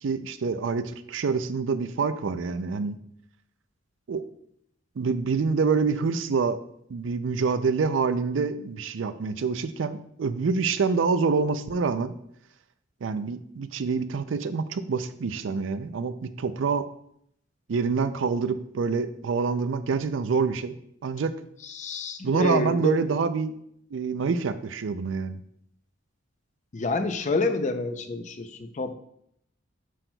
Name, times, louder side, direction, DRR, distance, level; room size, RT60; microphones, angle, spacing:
voice 1, 0.0-3.0 4.1-4.2 5.0-6.6 6.9-12.1 13.0-16.8 17.7-20.7 21.0-21.3 22.2-23.5 23.9-25.4, right 5 dB, 75° right, 12 dB, 0.4 m, -26 dB
voice 2, 21.6-23.0 26.7-28.9, left 3 dB, 40° left, 9 dB, 0.5 m, -28 dB
7.7 x 6.1 x 2.3 m, 0.72 s
head